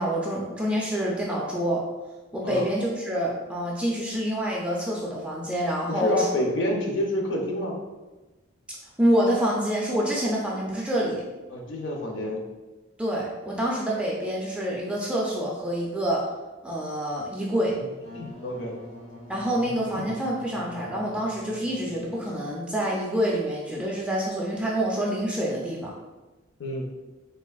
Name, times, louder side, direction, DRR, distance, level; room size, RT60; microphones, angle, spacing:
voice 1, 0.0-1.8 2.3-6.3 9.0-11.2 13.0-16.2 16.6-17.8 19.3-25.9, equal, 5° right, -4 dB, 0.3 m, -27 dB
voice 2, 5.9-7.8 11.5-12.4 18.1-18.8 19.9-20.1 26.6-26.9, left 1 dB, 60° left, 1 dB, 0.5 m, -28 dB
Wind instrument woodwind instrument, 17.9-22.5, left 1 dB, 80° left, 1.1 m, -45 dB
3.3 x 2.4 x 2.3 m, 1.1 s
head